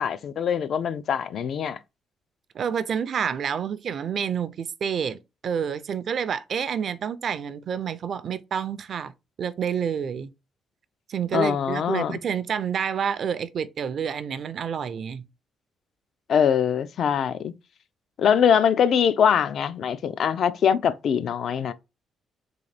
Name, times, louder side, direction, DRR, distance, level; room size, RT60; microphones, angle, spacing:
voice 1, 0.0-1.8 11.3-12.2 16.3-17.5 18.2-21.7, left 8 dB, 65° left, 0.3 m, -23 dB
voice 2, 2.5-9.1 9.4-10.3 11.1-15.2, right 7 dB, 60° right, 0.4 m, -28 dB
3.8 x 2.4 x 3.3 m
cardioid pair, 90°, 0 cm